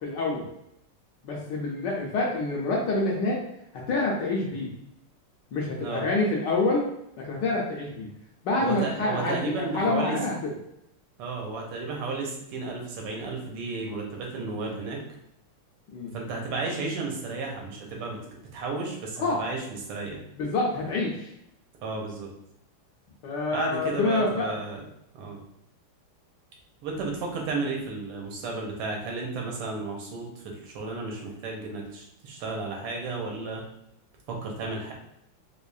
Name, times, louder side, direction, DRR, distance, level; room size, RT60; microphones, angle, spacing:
voice 1, 0.0-0.5 1.2-3.4 3.7-4.7 5.5-6.8 7.2-8.1 8.4-10.5 15.9-16.1 19.2-19.4 20.4-21.3 23.2-24.5, left 2 dB, 70° left, -3 dB, 1.1 m, -27 dB
voice 2, 8.6-10.2 11.2-15.0 16.1-18.2 18.5-20.2 21.8-22.3 23.5-24.8 25.1-25.4 26.8-33.6 34.3-34.9, right 3 dB, 90° right, 0 dB, 1.7 m, -33 dB
4.7 x 2.5 x 2.3 m, 0.79 s
omnidirectional pair, 2.4 m